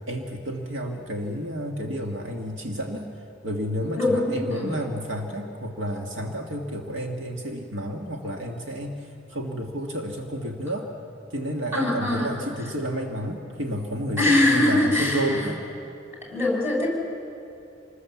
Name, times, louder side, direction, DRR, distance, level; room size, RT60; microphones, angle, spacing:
voice 1, 0.1-3.1 3.4-9.0 9.3-10.9 11.3-15.6, equal, 70° right, 2 dB, 1.8 m, -30 dB
voice 2, 4.0-4.7 11.7-12.3 14.2-15.4 16.3-16.9, left 1 dB, 10° right, -2 dB, 6.1 m, -22 dB
27.0 x 20.5 x 7.3 m, 2.8 s
head